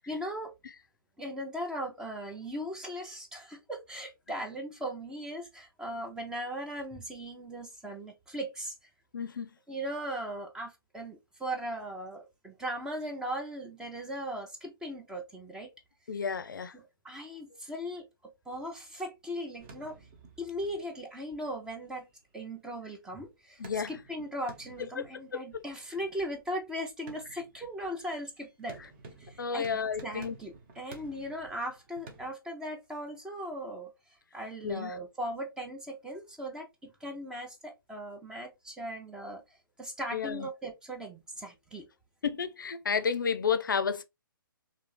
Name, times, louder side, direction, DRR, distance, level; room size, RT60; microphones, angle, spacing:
voice 1, 0.1-0.5 1.2-8.7 9.7-15.7 16.7-20.0 20.4-22.1 22.3-28.8 29.2-29.7 30.0-33.9 34.3-39.4 39.8-41.9, equal, 5° right, 0.6 m, -38 dB
voice 2, 9.1-9.5 16.1-16.7 23.6-23.9 29.4-30.4 34.6-34.9 40.1-40.5 42.2-44.0, left 6 dB, 60° left, 0.5 m, -31 dB
sound 1, 19.6-22.7 23.0-23.1 23.6-32.3, right 3 dB, 30° right, 1.1 m, -53 dB
3.6 x 2.8 x 3.1 m
figure-of-eight pair, 130°, 12 cm